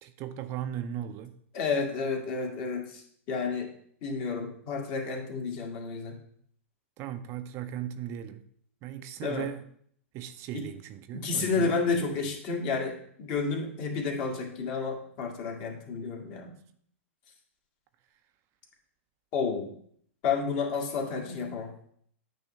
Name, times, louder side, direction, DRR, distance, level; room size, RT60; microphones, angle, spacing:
voice 1, 0.0-1.4 7.0-8.4 8.8-9.6 10.1-11.7, right 10 dB, 40° right, 0.5 m, -37 dB
voice 2, 1.5-3.0 3.3-3.7 4.0-6.2 9.2-9.5 10.5-10.7 11.1-16.5 19.3-19.7 20.2-21.7, left 4 dB, 45° left, 1.9 m, -31 dB
9.0 x 3.1 x 5.5 m
hypercardioid pair, 115°, 7 cm